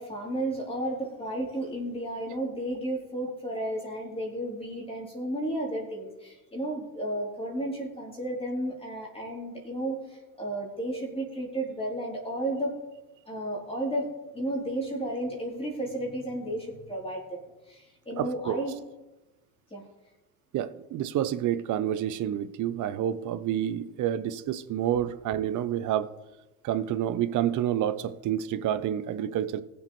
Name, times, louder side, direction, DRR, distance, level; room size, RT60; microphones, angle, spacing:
voice 1, 0.0-12.8 13.3-18.8 19.7-19.8, right 1 dB, 15° left, -3 dB, 3.6 m, -33 dB
voice 2, 18.2-18.6 20.5-26.1 26.6-29.6, right 11 dB, 45° right, 14 dB, 0.9 m, -29 dB
20.0 x 7.0 x 3.3 m, 1.1 s
hypercardioid pair, 80°, 44 cm